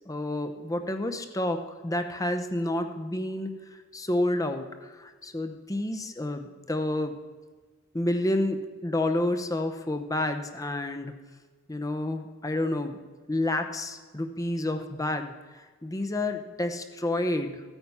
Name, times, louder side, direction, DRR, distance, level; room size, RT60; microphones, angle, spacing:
voice 1, 0.1-7.2 7.9-11.1 11.7-13.0 13.3-17.6, left 1 dB, 15° left, 6 dB, 0.8 m, -30 dB
15.0 x 9.0 x 5.5 m, 1.4 s
head